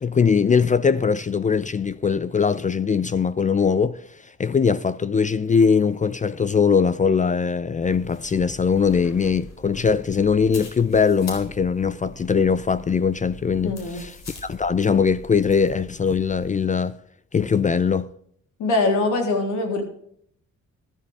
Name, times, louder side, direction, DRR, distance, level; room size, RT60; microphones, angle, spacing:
voice 1, 0.0-4.0 4.4-14.1 14.4-17.0 17.3-18.1, left 6 dB, 25° left, 0.5 m, -21 dB
sound 1, 7.8-16.5, left 1 dB, 60° left, 4.2 m, -43 dB
voice 2, 13.6-14.0 18.6-19.8, left 2 dB, 80° left, 3.6 m, -22 dB
13.5 x 12.0 x 3.5 m
cardioid pair, 90°, 30 cm